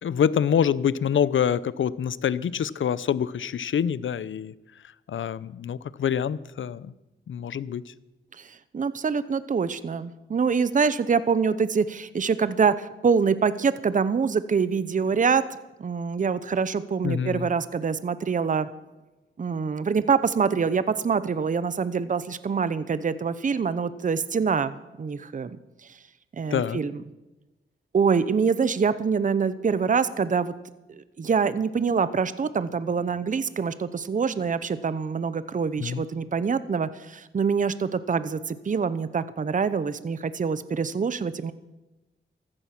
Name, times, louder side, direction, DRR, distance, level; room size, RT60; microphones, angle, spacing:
voice 1, 0.0-4.5 5.1-6.9 7.3-7.9 17.0-17.5 26.5-26.8 35.8-36.0, left 8 dB, 70° left, 18 dB, 0.7 m, -26 dB
voice 2, 8.4-15.4 15.8-18.7 19.4-25.5 26.3-27.0 27.9-30.5 30.9-41.5, right 5 dB, 40° right, 14 dB, 0.8 m, -25 dB
15.0 x 14.0 x 6.0 m, 1.0 s
wide cardioid pair, 95°, 21 cm